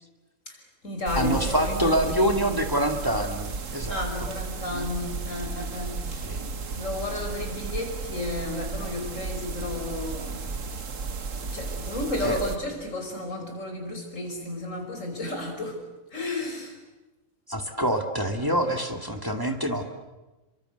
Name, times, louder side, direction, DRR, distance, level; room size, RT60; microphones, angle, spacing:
voice 1, 0.5-2.4 3.9-6.4 6.7-10.5 11.5-15.8 16.1-16.8, left 2 dB, 80° left, 4 dB, 5.7 m, -33 dB
sound 1, 1.1-12.6, right 4 dB, 80° right, 1.9 m, -34 dB
voice 2, 1.2-4.0 4.7-4.9 6.2-6.5 12.2-12.4 17.5-19.8, equal, 15° right, 5 dB, 2.2 m, -26 dB
29.5 x 24.5 x 8.1 m, 1.1 s
omnidirectional pair, 1.3 m